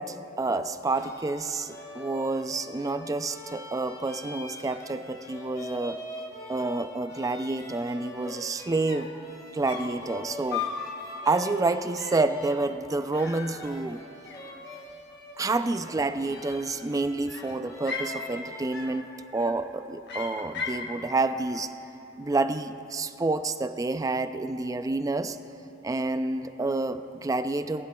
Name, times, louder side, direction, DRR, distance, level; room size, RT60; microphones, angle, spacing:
voice 1, 0.0-6.0 6.5-9.1 9.5-10.9 11.3-14.0 15.4-19.0 19.3-21.7 22.2-25.4 25.8-27.9, right 3 dB, 15° right, 11 dB, 0.3 m, -29 dB
sound 1, 0.6-18.8, left 1 dB, 15° left, 1.6 m, -44 dB
sound 2, 8.6-8.7 8.9-9.2 9.7-10.0 10.5-10.9 11.2-11.5 12.0-12.3 13.1-14.0 14.2-14.9 16.2-16.8 17.3-18.2 18.7-19.0 19.3-19.7 20.1-20.9, left 6 dB, 60° left, 1.0 m, -37 dB
28.0 x 11.0 x 2.3 m, 2.9 s
head